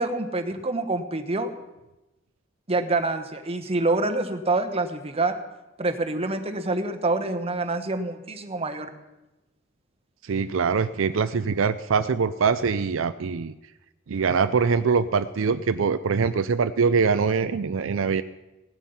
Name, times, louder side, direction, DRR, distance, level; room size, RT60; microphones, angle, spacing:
voice 1, 0.0-1.5 2.7-5.4 5.8-8.9, right 2 dB, 30° right, 6 dB, 1.2 m, -26 dB
voice 2, 10.2-13.5 14.1-18.2, right 5 dB, 75° right, 12 dB, 0.5 m, -23 dB
16.5 x 12.0 x 5.6 m, 1.0 s
head